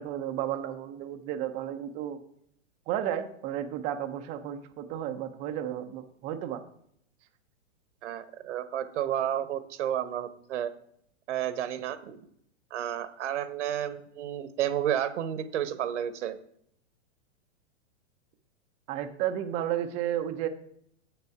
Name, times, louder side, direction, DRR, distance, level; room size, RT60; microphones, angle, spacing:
voice 1, 0.0-2.2 2.9-6.6 18.9-20.5, right 11 dB, 20° right, 9 dB, 0.5 m, -33 dB
voice 2, 8.0-10.7 11.3-12.2 12.7-16.4, right 10 dB, 70° right, 13 dB, 1.1 m, -31 dB
8.1 x 6.9 x 4.7 m, 0.69 s
hypercardioid pair, 155°, 36 cm